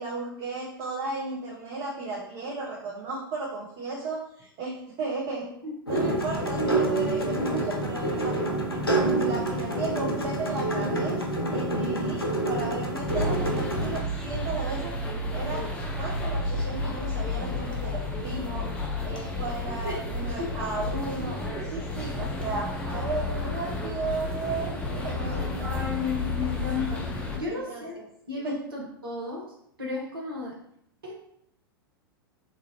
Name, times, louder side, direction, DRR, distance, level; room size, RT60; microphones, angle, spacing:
voice 1, 0.0-5.5 5.9-8.3 8.7-8.9 9.2-11.2 11.5-14.9 15.3-15.6 16.0-18.7 19.0-21.4 21.6-25.8 27.4-28.0 28.4-28.6, right 3 dB, 40° right, -3 dB, 0.7 m, -34 dB
voice 2, 5.6-6.2 19.8-19.9 20.4-20.5 21.3-21.4 25.6-27.1 27.3-28.0 28.3-29.5 29.8-30.5 31.0-31.2, left 3 dB, 70° right, -3 dB, 1.0 m, -33 dB
sound 1, 5.9-14.0, right 2 dB, 85° left, 0.6 m, -27 dB
sound 2, 13.1-27.4, left 2 dB, 10° left, 0.5 m, -31 dB
3.2 x 2.5 x 2.9 m, 0.72 s
figure-of-eight pair, 95°, 12 cm